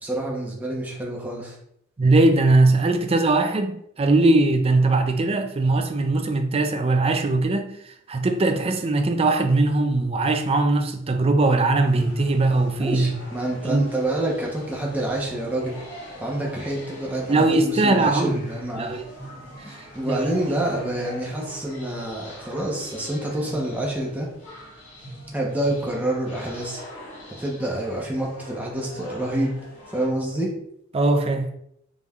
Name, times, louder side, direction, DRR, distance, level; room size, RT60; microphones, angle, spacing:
voice 1, 0.0-1.6 12.8-15.8 16.2-19.0 19.9-24.3 25.3-26.8 27.4-29.6 29.9-30.5, right 1 dB, 10° right, 0.8 m, -27 dB
voice 2, 2.0-7.7 8.1-13.1 13.6-13.9 17.3-18.4 18.8-19.0 19.7-19.8 20.1-20.6 30.9-31.5, right 2 dB, 30° right, 0.4 m, -20 dB
sound 1, 11.9-30.1, equal, 65° left, 1.6 m, -42 dB
5.4 x 3.3 x 2.4 m
head